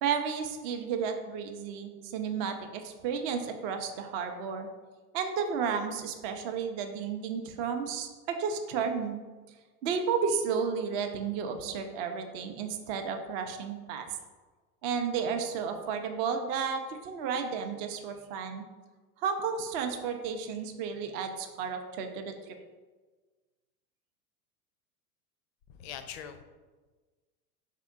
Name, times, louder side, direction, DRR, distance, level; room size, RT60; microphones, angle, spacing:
voice 1, 0.0-4.7 5.1-8.1 8.4-9.2 9.8-14.0 14.8-18.6 19.2-22.6, right 6 dB, 40° right, 6 dB, 0.5 m, -32 dB
voice 2, 25.8-26.4, left 9 dB, 45° left, 9 dB, 0.4 m, -41 dB
4.9 x 3.6 x 2.4 m, 1.3 s
hypercardioid pair, 90°, 47 cm